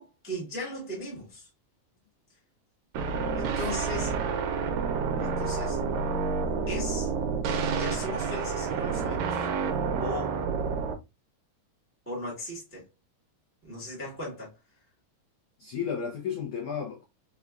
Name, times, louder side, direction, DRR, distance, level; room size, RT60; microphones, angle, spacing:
voice 1, 0.0-1.5 3.3-4.1 5.2-5.8 6.7-7.1 7.7-9.5 10.0-10.4 12.0-12.8 13.6-14.5, equal, 10° right, 0.6 m, -37 dB
sound 1, 2.9-10.9, right 5 dB, 80° right, 1.8 m, -29 dB
voice 2, 15.6-17.0, left 7 dB, 85° left, 1.1 m, -33 dB
4.9 x 2.2 x 2.3 m
omnidirectional pair, 3.3 m